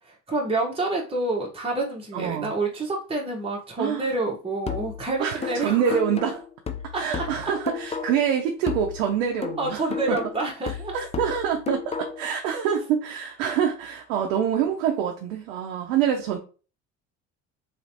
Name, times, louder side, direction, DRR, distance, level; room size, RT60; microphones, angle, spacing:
voice 1, 0.0-6.0 6.9-7.5 9.6-10.9, right 2 dB, 15° right, -2 dB, 1.1 m, -28 dB
voice 2, 2.1-2.5 3.8-4.1 5.2-6.4 7.0-9.8 10.1-10.2 10.9-16.4, right 8 dB, 85° right, 2 dB, 0.7 m, -26 dB
sound 1, 4.7-8.3 8.7-12.3, left 7 dB, 20° left, 0.4 m, -33 dB
3.2 x 3.1 x 2.9 m, 0.36 s
hypercardioid pair, 75°, 37 cm